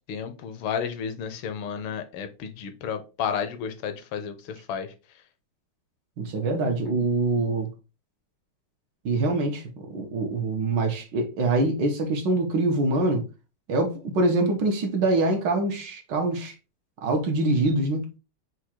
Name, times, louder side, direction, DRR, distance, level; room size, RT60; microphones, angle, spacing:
voice 1, 0.1-4.9, left 7 dB, 80° left, 1.4 m, -32 dB
voice 2, 6.2-7.7 9.0-13.2 13.7-16.5 17.0-18.1, right 2 dB, 65° right, 1.4 m, -24 dB
4.8 x 2.3 x 4.3 m
omnidirectional pair, 2.3 m